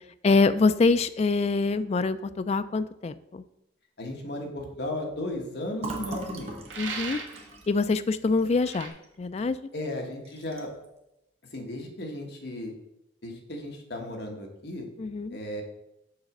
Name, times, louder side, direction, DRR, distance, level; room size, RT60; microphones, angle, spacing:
voice 1, 0.2-3.4 6.8-7.2 7.7-9.6 15.0-15.4, left 3 dB, 35° left, 12 dB, 0.3 m, -25 dB
voice 2, 4.0-6.8 9.7-10.7 11.5-12.7 13.2-14.9 15.3-15.6, left 1 dB, 60° left, 2 dB, 1.2 m, -35 dB
Fill (with liquid), 5.8-9.4 9.8-9.9 10.2-10.9, right 2 dB, 35° right, 1.0 m, -40 dB
sound 1, 6.7-7.5 8.6-8.9, right 4 dB, 70° right, 1.2 m, -36 dB
6.5 x 4.0 x 5.8 m, 0.87 s
head